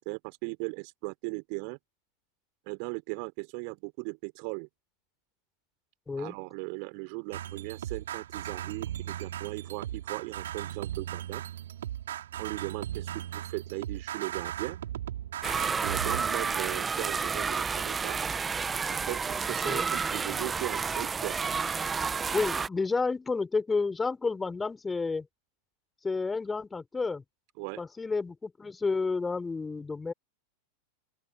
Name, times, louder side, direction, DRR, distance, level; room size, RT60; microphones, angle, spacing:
voice 1, 0.0-1.8 2.7-4.7 6.2-11.4 12.4-14.8 15.8-18.2 18.9-21.4 27.6-27.8, right 40 dB or more, 45° right, 4.0 m, -38 dB
sound 1, 7.3-16.2, right 11 dB, 60° right, 5.9 m, -37 dB
sound 2, 15.4-22.7, right 5 dB, 15° right, 1.1 m, -30 dB
voice 2, 22.3-25.3 26.0-27.2 27.8-30.1, left 4 dB, 10° left, 4.3 m, -30 dB
open air
figure-of-eight pair, 90°, 0 cm